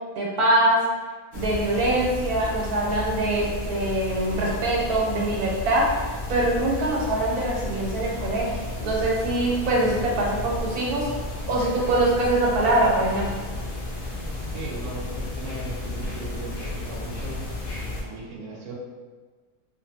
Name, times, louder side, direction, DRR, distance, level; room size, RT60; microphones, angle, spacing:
voice 1, 0.1-0.8 1.3-5.8 6.3-11.1 11.5-13.3, right 1 dB, 85° right, -4 dB, 1.2 m, -23 dB
sound 1, 1.3-18.0, left 2 dB, 60° left, 0.4 m, -33 dB
voice 2, 14.5-17.4 18.0-18.7, right 2 dB, 65° right, -3 dB, 0.9 m, -37 dB
2.6 x 2.4 x 2.6 m, 1.4 s
omnidirectional pair, 1.6 m